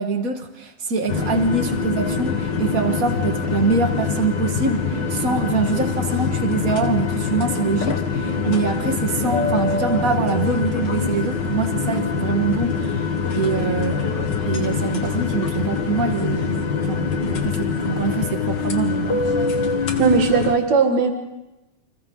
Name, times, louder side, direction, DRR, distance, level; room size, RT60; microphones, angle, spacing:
voice 1, 0.0-19.4, right 4 dB, 40° right, 5 dB, 1.4 m, -24 dB
sound 1, 1.1-20.5, left 5 dB, 45° left, 1.6 m, -24 dB
voice 2, 20.0-21.1, right 5 dB, 60° right, 4 dB, 3.2 m, -18 dB
29.5 x 26.5 x 3.9 m, 1.0 s
omnidirectional pair, 3.7 m